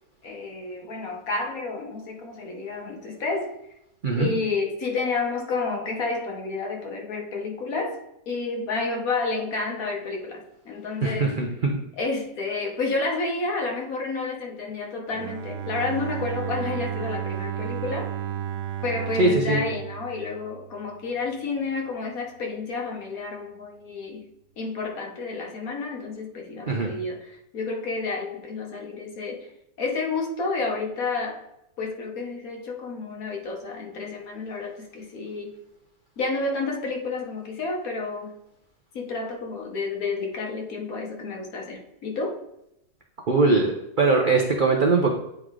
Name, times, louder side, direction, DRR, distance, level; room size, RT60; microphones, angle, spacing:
voice 1, 0.2-3.5 4.2-8.0 8.3-11.3 12.0-18.1 18.8-24.2 24.6-29.5 29.8-31.4 31.8-35.5 36.2-38.3 38.9-42.4, left 3 dB, 55° left, 1 dB, 1.4 m, -30 dB
voice 2, 11.0-11.8 19.2-19.6 26.7-26.9 43.3-45.1, right 3 dB, 60° right, 0 dB, 0.5 m, -21 dB
Bowed string instrument, 15.1-21.0, right 10 dB, 85° right, 1.3 m, -33 dB
9.2 x 3.1 x 3.7 m, 0.84 s
omnidirectional pair, 1.9 m